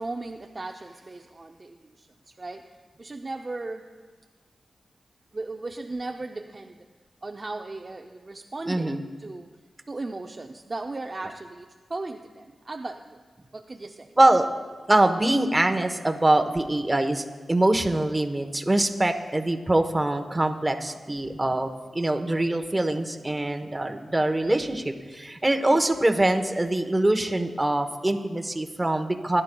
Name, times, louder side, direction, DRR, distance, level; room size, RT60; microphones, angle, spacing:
voice 1, 0.0-2.1 2.4-2.6 3.0-3.9 5.3-6.7 7.2-9.5 9.9-13.2 13.5-14.1 25.7-25.8, right 2 dB, 40° right, 3 dB, 0.5 m, -36 dB
voice 2, 8.7-9.0 14.2-14.5 14.9-29.4, right 1 dB, 20° right, 6 dB, 1.0 m, -23 dB
20.0 x 11.0 x 2.3 m, 1.5 s
cardioid pair, 55°, 0 cm